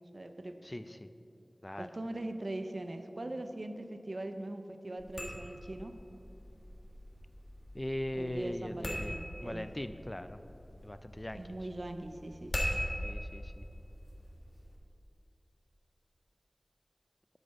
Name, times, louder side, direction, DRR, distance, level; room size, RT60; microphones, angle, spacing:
voice 1, 0.1-0.5 1.8-5.9 8.1-9.7 11.3-12.5, right 1 dB, 65° right, 7 dB, 0.6 m, -41 dB
sound 1, 5.0-14.8, equal, 60° left, 1.4 m, -41 dB
voice 2, 7.7-9.1 9.4-10.4 10.8-11.4 13.0-13.6, left 1 dB, 25° left, 11 dB, 0.4 m, -39 dB
8.1 x 6.5 x 5.4 m, 2.7 s
wide cardioid pair, 45°, 0 cm